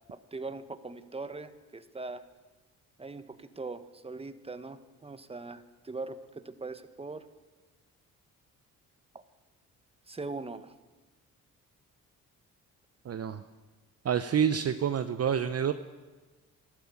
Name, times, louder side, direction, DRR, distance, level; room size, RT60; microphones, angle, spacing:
voice 1, 0.1-2.2 3.0-7.3 9.1-9.2 10.1-10.7, right 3 dB, 15° right, 11 dB, 1.2 m, -41 dB
voice 2, 13.0-13.4 14.0-15.7, right 8 dB, 45° right, 10 dB, 0.8 m, -28 dB
13.0 x 12.5 x 8.5 m, 1.2 s
supercardioid pair, 60°, 35 cm